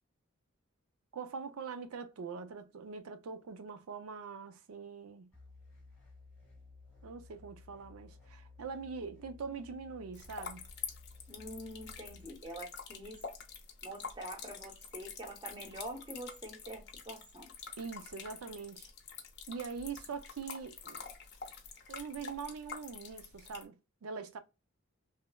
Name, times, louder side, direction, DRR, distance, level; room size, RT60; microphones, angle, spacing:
voice 1, 1.1-5.3 7.0-10.7 17.8-18.9 19.5-21.0 21.9-24.4, right 5 dB, 85° right, 0.4 m, -43 dB
sound 1, 5.3-12.3, left 3 dB, 5° left, 0.9 m, -56 dB
sound 2, 10.1-23.6, left 6 dB, 50° left, 0.6 m, -47 dB
voice 2, 11.3-13.2 13.8-17.5, right 1 dB, 20° right, 0.6 m, -45 dB
3.1 x 2.0 x 2.2 m
head